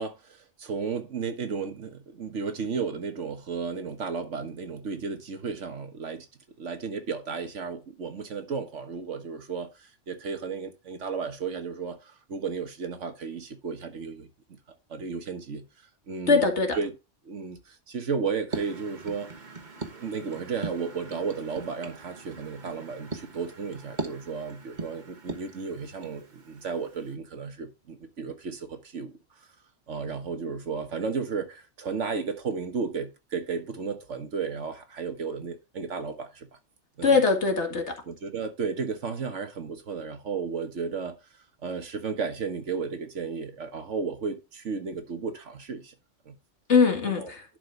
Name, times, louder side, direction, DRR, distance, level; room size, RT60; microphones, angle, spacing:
voice 1, 0.0-6.3 6.6-14.6 14.9-15.7 16.1-16.5 16.7-16.9 17.2-19.3 19.9-29.1 29.9-36.6 37.0-37.2 38.1-41.1 41.6-45.9 46.2-46.4 47.1-47.3, right 5 dB, 80° right, 1.7 m, -33 dB
voice 2, 16.3-16.8 37.0-38.0 46.7-47.4, left 4 dB, 70° left, 2.2 m, -22 dB
sound 1, 18.5-27.1, right 4 dB, 40° right, 1.4 m, -40 dB
11.0 x 5.2 x 3.8 m
omnidirectional pair, 1.2 m